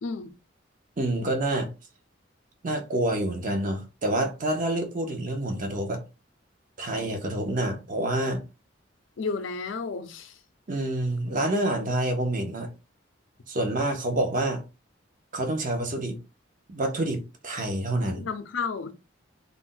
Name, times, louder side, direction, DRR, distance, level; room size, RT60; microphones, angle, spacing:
voice 1, 0.0-0.3 9.2-10.3 18.1-18.9, left 4 dB, 75° left, 0.5 m, -32 dB
voice 2, 1.0-1.7 2.6-6.0 6.8-8.4 10.7-12.7 13.5-14.6 15.3-16.2 16.7-18.3, right 1 dB, 45° right, 0.7 m, -27 dB
2.5 x 2.1 x 3.7 m
head